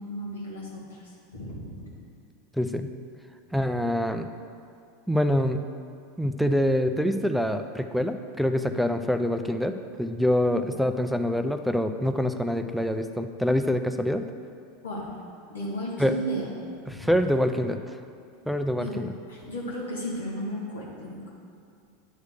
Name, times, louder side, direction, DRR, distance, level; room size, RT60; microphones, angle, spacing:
voice 1, 0.0-1.9 14.8-15.1 15.5-16.5 16.9-17.2 18.8-19.0 19.3-21.3, equal, 80° left, -4 dB, 1.7 m, -34 dB
voice 2, 2.5-2.9 3.5-4.3 5.1-5.6 6.2-14.2 16.0-16.2 16.9-17.8 18.5-19.1, equal, ahead, 7 dB, 0.4 m, -25 dB
9.2 x 3.2 x 6.5 m, 2.3 s
figure-of-eight pair, 85°, 0 cm